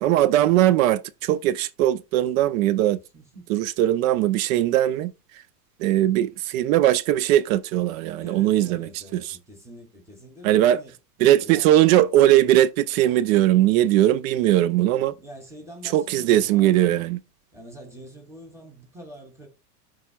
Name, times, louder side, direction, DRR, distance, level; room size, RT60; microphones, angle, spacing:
voice 1, 0.0-3.0 3.5-5.1 5.8-9.2 10.4-10.8 11.2-15.1 15.9-17.2, right 13 dB, 60° right, 0.5 m, -20 dB
voice 2, 3.1-3.5 8.2-10.9 11.4-11.8 15.2-17.0 17.5-19.5, equal, 5° right, 2.6 m, -45 dB
11.0 x 4.8 x 2.3 m
hypercardioid pair, 115°, 47 cm